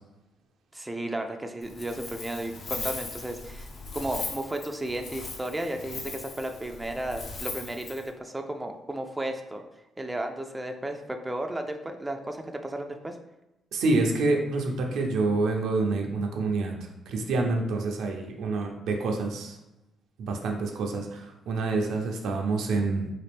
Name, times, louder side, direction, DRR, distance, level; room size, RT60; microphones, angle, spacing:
voice 1, 0.7-9.6 10.0-13.2, right 1 dB, 15° right, 4 dB, 0.4 m, -34 dB
Wind, 1.6-8.1, left 3 dB, 65° left, 0.8 m, -39 dB
voice 2, 13.7-16.7 17.1-19.6 20.2-23.1, right 3 dB, 80° right, 2 dB, 0.6 m, -27 dB
4.0 x 2.5 x 3.4 m, 0.95 s
cardioid pair, 90°, 0 cm